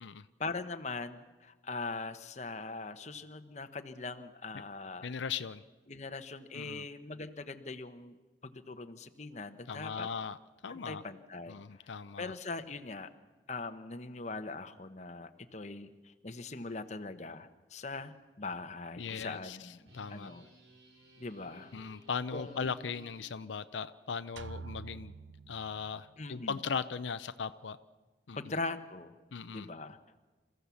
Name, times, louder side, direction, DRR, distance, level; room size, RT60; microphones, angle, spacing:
voice 1, 0.4-5.1 5.9-8.2 8.4-10.1 10.7-11.5 11.8-13.1 13.5-19.8 20.1-20.5 21.2-21.7 22.3-22.7 26.2-26.6 28.3-29.1 29.5-30.2, left 3 dB, 40° left, 9 dB, 1.0 m, -41 dB
voice 2, 5.0-5.6 6.5-6.9 9.7-11.0 11.5-12.3 19.0-20.3 21.7-25.2 25.5-27.8 28.3-28.6 29.3-29.7, left 6 dB, 85° left, 12 dB, 0.6 m, -38 dB
sound 1, 18.0-18.2 18.5-18.7 19.9-23.3, equal, 65° right, 4.0 m, -58 dB
sound 2, 24.4-26.2, right 4 dB, 90° right, 0.6 m, -47 dB
28.0 x 15.0 x 7.1 m, 1.3 s
head